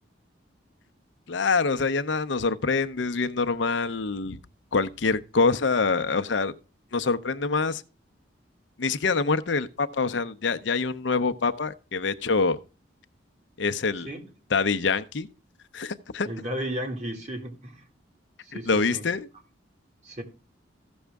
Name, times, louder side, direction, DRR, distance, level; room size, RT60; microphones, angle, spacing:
voice 1, 1.3-4.4 4.7-6.5 6.9-7.8 8.8-12.6 13.6-14.1 14.5-15.3 15.7-16.3 18.7-19.3, left 4 dB, 70° left, 0.7 m, -25 dB
voice 2, 16.2-17.8 18.4-19.1 20.0-20.2, equal, 35° right, 2.0 m, -34 dB
14.5 x 6.3 x 3.5 m
head